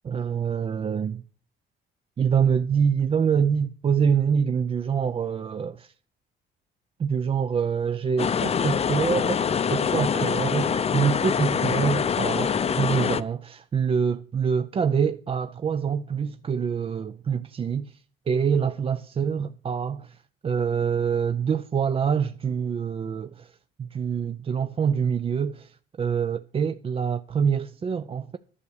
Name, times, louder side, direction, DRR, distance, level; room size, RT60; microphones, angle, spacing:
voice 1, 0.0-1.2 2.2-5.9 7.0-18.0 18.3-20.2 20.4-23.5 23.8-28.4, right 7 dB, 30° right, 0.4 m, -25 dB
sound 1, 8.2-13.2, left 7 dB, 30° left, 0.6 m, -25 dB
11.0 x 7.2 x 6.4 m
cardioid pair, 120°, 20 cm